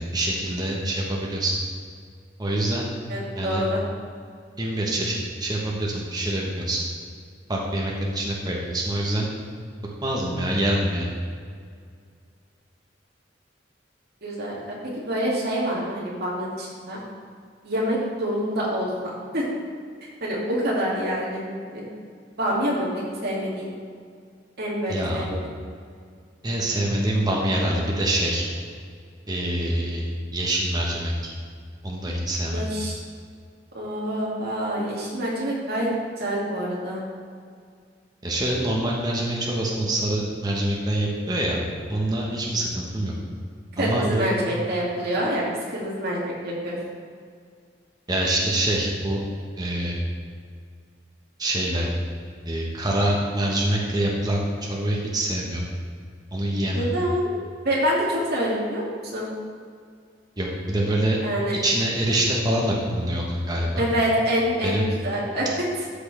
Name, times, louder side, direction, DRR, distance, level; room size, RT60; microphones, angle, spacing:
voice 1, 0.0-1.5 2.4-2.9 3.4-3.6 4.6-6.8 7.5-9.3 10.0-11.1 24.9-25.2 26.4-28.5 29.3-30.0 30.3-31.3 31.8-32.6 38.2-41.6 41.9-43.1 43.8-44.2 48.1-49.2 49.6-50.0 51.4-51.9 52.4-54.4 54.7-55.6 56.3-56.8 60.4-61.2 61.6-63.8 64.6-64.8, right 1 dB, 20° right, -3 dB, 1.3 m, -25 dB
voice 2, 3.1-3.8 14.2-14.6 15.0-17.0 17.6-19.4 20.2-21.4 21.7-21.8 22.4-23.7 24.6-25.4 32.5-33.0 33.7-35.9 36.2-37.0 43.8-45.5 45.7-46.8 56.7-57.3 57.6-59.3 61.2-61.6 63.8-65.5, equal, 60° right, -5 dB, 2.5 m, -26 dB
13.5 x 6.2 x 3.5 m, 2.1 s
head